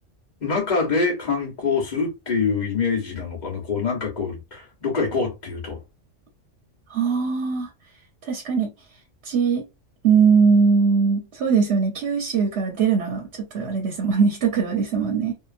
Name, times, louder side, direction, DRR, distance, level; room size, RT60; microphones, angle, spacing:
voice 1, 0.4-5.8, left 4 dB, 40° left, 1.1 m, -25 dB
voice 2, 6.9-7.7 8.2-8.7 9.2-9.6 10.0-15.3, right 5 dB, 60° right, 1.0 m, -21 dB
2.8 x 2.4 x 2.4 m
omnidirectional pair, 1.3 m